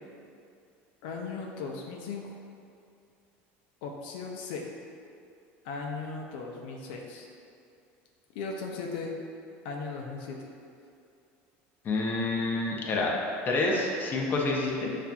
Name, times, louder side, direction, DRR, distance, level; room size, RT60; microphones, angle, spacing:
voice 1, 1.0-2.3 3.8-4.7 5.6-7.3 8.3-9.2 9.6-10.4, left 4 dB, 80° left, 0 dB, 0.4 m, -37 dB
voice 2, 11.8-13.1 13.5-14.9, left 2 dB, 35° left, -1 dB, 0.5 m, -28 dB
5.6 x 2.5 x 2.2 m, 2.5 s
supercardioid pair, 125°, 6 cm